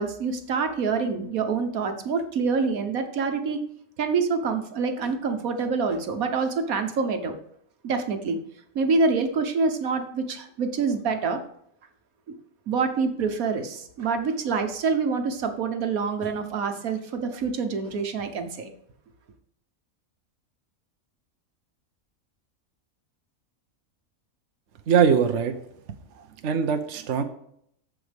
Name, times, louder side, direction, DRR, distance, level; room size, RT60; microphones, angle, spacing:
voice 1, 0.0-3.6 4.0-7.3 7.8-8.4 8.7-11.4 12.7-18.7, right 4 dB, 85° right, 6 dB, 1.5 m, -26 dB
voice 2, 24.9-25.5 26.2-27.2, right 7 dB, 60° right, 7 dB, 1.1 m, -22 dB
14.5 x 5.0 x 3.4 m, 0.69 s
omnidirectional pair, 1.5 m